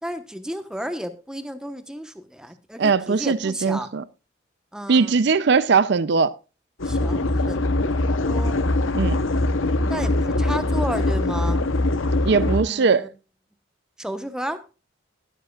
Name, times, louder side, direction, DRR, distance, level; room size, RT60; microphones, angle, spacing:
voice 1, 0.0-3.9 4.7-5.2 6.8-8.6 9.6-11.6 12.3-13.1 14.0-14.6, equal, 5° right, 1.0 m, -33 dB
voice 2, 2.8-4.0 4.9-6.3 8.9-9.2 12.2-13.1, right 5 dB, 60° right, 0.5 m, -20 dB
sound 1, 6.8-12.6, left 2 dB, 80° left, 0.9 m, -22 dB
20.5 x 7.6 x 2.4 m
head